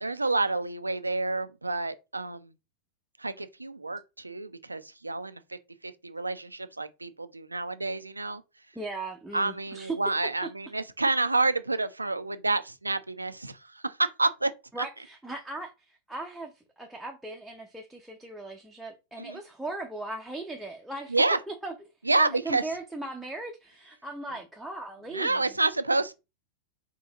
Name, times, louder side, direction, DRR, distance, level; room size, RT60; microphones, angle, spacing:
voice 1, 0.0-2.5 3.2-5.4 5.8-8.4 9.3-14.5 19.2-19.4 21.1-21.4 22.0-22.6 25.1-26.1, right 3 dB, 80° right, 0.4 m, -28 dB
voice 2, 8.7-10.0 14.7-21.2 21.5-21.7 22.2-25.5, right 2 dB, 5° right, 0.7 m, -38 dB
3.8 x 2.8 x 3.8 m
figure-of-eight pair, 90°, 0 cm